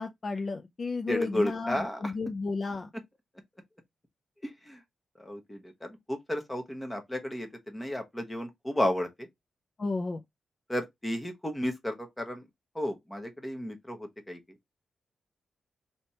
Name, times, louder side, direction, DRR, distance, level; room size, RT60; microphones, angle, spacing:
voice 1, 0.0-2.9 9.8-10.2, left 3 dB, 35° left, 0.4 m, -33 dB
voice 2, 1.1-2.0 4.4-4.8 5.2-9.3 10.7-12.4 12.7-14.4, left 1 dB, 10° left, 0.9 m, -33 dB
3.3 x 2.8 x 4.3 m
wide cardioid pair, 145°, 0 cm